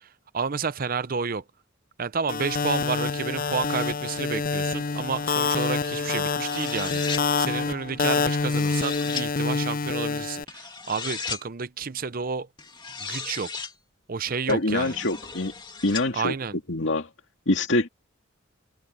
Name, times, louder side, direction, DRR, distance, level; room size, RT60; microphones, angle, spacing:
voice 1, 0.3-1.4 2.0-12.5 13.1-13.5 14.1-15.0 16.1-16.6, right 5 dB, 45° right, 0.6 m, -30 dB
sound 1, 2.3-10.4, left 4 dB, 45° left, 0.5 m, -27 dB
sound 2, 6.3-7.2 8.2-9.3 10.5-11.4 12.6-13.7 14.5-16.1, left 5 dB, 20° left, 2.2 m, -36 dB
voice 2, 14.5-15.5 15.8-16.3 16.7-17.1 17.5-17.9, left 2 dB, 60° left, 2.4 m, -24 dB
head